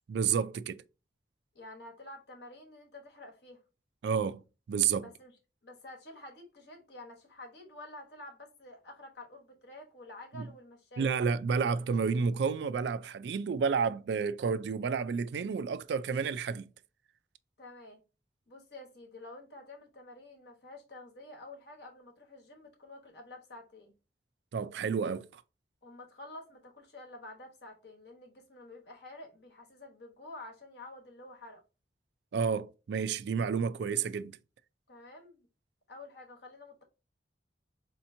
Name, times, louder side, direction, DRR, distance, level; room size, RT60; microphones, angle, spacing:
voice 1, 0.1-0.8 4.0-5.1 10.4-10.5 11.0-16.7 24.5-25.4 32.3-34.4, right 6 dB, 70° right, 0.3 m, -30 dB
voice 2, 1.5-3.6 5.0-5.3 5.6-11.2 17.6-18.0 18.5-23.9 25.8-31.6 34.9-35.5 35.9-36.8, left 2 dB, 65° left, 1.1 m, -49 dB
4.2 x 2.9 x 2.6 m
head